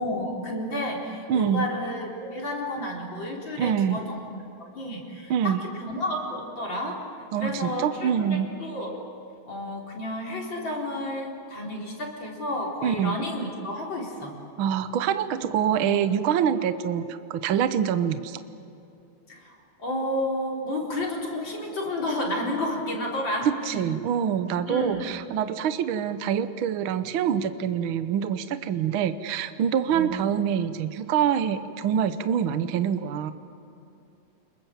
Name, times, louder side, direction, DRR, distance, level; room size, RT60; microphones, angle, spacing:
voice 1, 0.0-4.2 4.6-7.0 7.4-8.9 9.5-14.4 19.3-19.5 19.8-23.9 24.7-25.0 29.9-30.1, left 1 dB, 40° left, -2 dB, 4.6 m, -31 dB
voice 2, 1.3-1.7 3.6-4.0 5.3-5.6 7.3-8.5 12.8-13.2 14.6-18.4 23.4-33.3, right 8 dB, 65° right, 11 dB, 1.3 m, -25 dB
29.5 x 21.5 x 7.5 m, 2.8 s
omnidirectional pair, 3.3 m